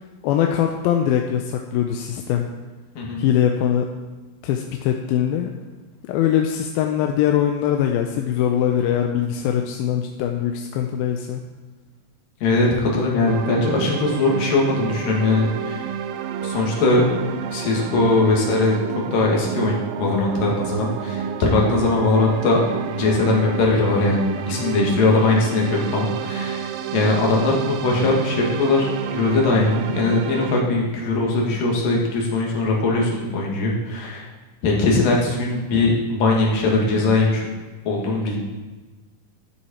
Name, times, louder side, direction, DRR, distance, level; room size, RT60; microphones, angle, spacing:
voice 1, 0.2-2.5 3.2-3.9 4.4-5.5 6.0-11.4, left 10 dB, 80° left, 3 dB, 2.4 m, -22 dB
voice 2, 12.4-16.0 16.4-17.0 17.5-18.8 19.1-22.6 22.9-34.3 34.6-37.5 37.8-38.4, left 3 dB, 65° left, -2 dB, 3.5 m, -20 dB
alone in the galaxy, 13.3-30.6, right 8 dB, 80° right, 2.1 m, -30 dB
13.5 x 7.8 x 4.3 m, 1.2 s
omnidirectional pair, 4.4 m